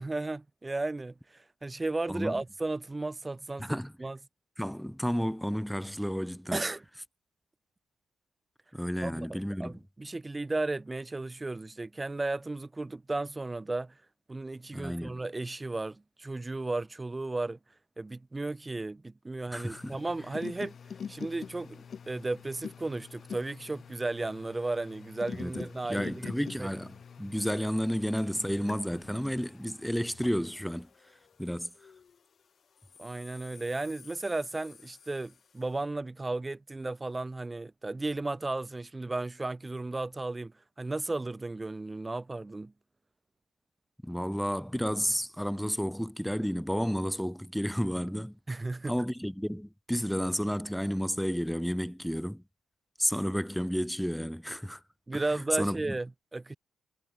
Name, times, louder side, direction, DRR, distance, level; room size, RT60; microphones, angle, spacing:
voice 1, 0.0-4.2 6.5-6.8 9.0-13.9 14.3-17.6 18.0-20.7 21.1-26.3 26.6-26.7 33.0-42.7 48.5-48.9 55.1-56.6, right 2 dB, 20° right, 1.3 m, -34 dB
voice 2, 2.1-2.4 3.6-3.9 4.6-6.6 8.7-9.8 14.7-15.2 19.5-20.0 25.4-30.9 31.4-31.7 44.0-48.4 48.8-52.4 53.0-54.8 55.1-56.0, equal, ahead, 1.1 m, -32 dB
sound 1, 19.5-32.2 32.8-35.6, left 7 dB, 50° left, 7.1 m, -47 dB
cardioid pair, 90°, 0 cm